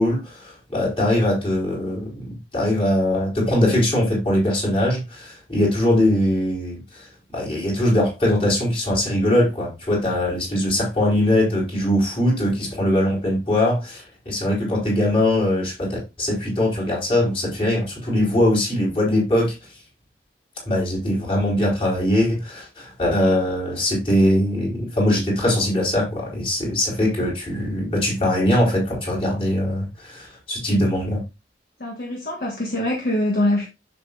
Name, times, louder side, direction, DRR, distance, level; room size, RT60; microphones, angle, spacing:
voice 1, 0.0-7.1 7.3-19.5 20.7-31.2, left 1 dB, 30° left, 4.4 m, -21 dB
voice 2, 31.8-33.7, left 1 dB, 55° left, 1.6 m, -23 dB
7.7 x 7.2 x 2.5 m
head